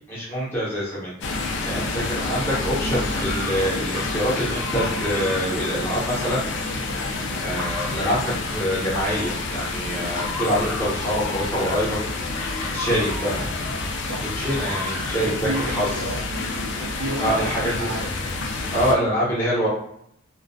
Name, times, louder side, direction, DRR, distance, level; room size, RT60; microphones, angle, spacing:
voice 1, 0.1-1.4 1.6-6.4 7.4-12.0 12.7-13.5 14.4-15.9 17.2-17.9 18.7-19.7, equal, 10° left, -7 dB, 0.8 m, -25 dB
sound 1, 1.2-19.0, left 3 dB, 55° left, 0.4 m, -29 dB
sound 2, 1.6-6.6 7.1-9.6 9.9-14.0 14.4-16.2, left 2 dB, 85° left, 0.7 m, -36 dB
voice 2, 15.2-18.1, right 1 dB, 75° right, 0 dB, 0.6 m, -32 dB
2.2 x 2.2 x 2.5 m, 0.73 s
head